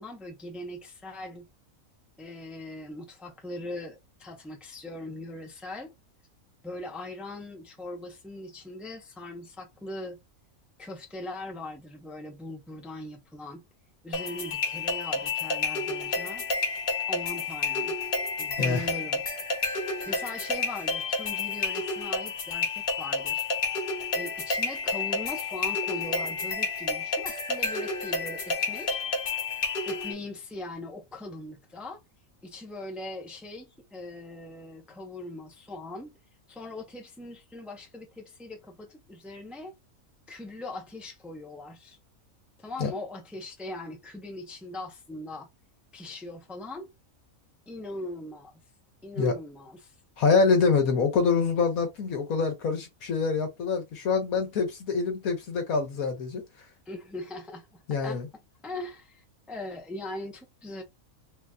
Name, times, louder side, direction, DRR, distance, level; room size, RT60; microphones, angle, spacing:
voice 1, 0.0-1.5 2.2-5.9 6.6-10.2 10.8-13.6 14.0-16.4 17.1-17.9 18.4-19.2 20.1-23.5 24.1-29.0 29.9-32.0 32.4-36.1 36.5-39.7 40.3-42.0 42.6-45.5 45.9-46.9 47.7-48.5 49.0-49.9 56.9-58.2 58.6-60.8, left 2 dB, ahead, 0.6 m, -40 dB
sound 1, 14.1-30.1, left 3 dB, 45° left, 0.9 m, -30 dB
voice 2, 50.2-56.4 57.9-58.3, left 5 dB, 85° left, 1.6 m, -25 dB
4.0 x 2.8 x 2.3 m
omnidirectional pair, 1.5 m